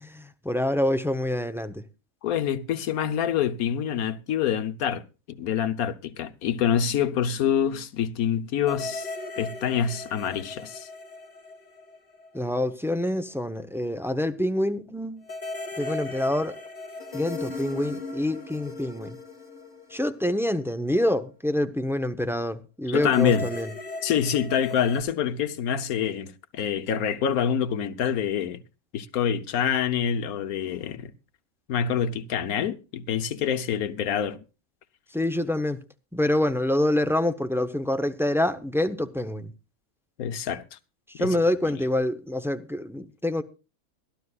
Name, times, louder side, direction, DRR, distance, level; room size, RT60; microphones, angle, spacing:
voice 1, 0.1-1.8 12.3-15.2 15.8-16.6 17.1-19.2 19.9-23.7 35.1-35.8 36.1-39.5 41.1-43.4, left 1 dB, 5° right, 0.5 m, -26 dB
voice 2, 2.2-9.1 9.4-10.9 22.9-23.5 24.0-28.6 28.9-31.1 31.7-34.4 40.2-40.8 41.2-41.3, left 8 dB, 80° left, 1.4 m, -26 dB
sound 1, 8.7-12.4 12.7-12.8 15.3-20.7 23.0-25.0, left 3 dB, 30° left, 1.8 m, -37 dB
22.5 x 12.5 x 2.4 m
omnidirectional pair, 1.5 m